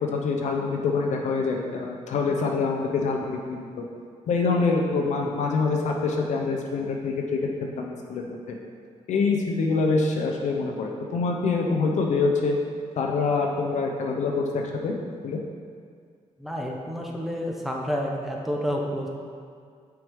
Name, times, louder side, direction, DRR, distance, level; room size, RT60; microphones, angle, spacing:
voice 1, 0.0-3.8 4.3-7.2 7.6-8.5 9.1-12.6 13.0-15.0 15.2-15.4, left 4 dB, 70° left, 1 dB, 0.6 m, -25 dB
voice 2, 16.4-19.1, equal, ahead, -1 dB, 0.7 m, -29 dB
6.2 x 4.7 x 3.5 m, 2.1 s
cardioid pair, 130°, 13 cm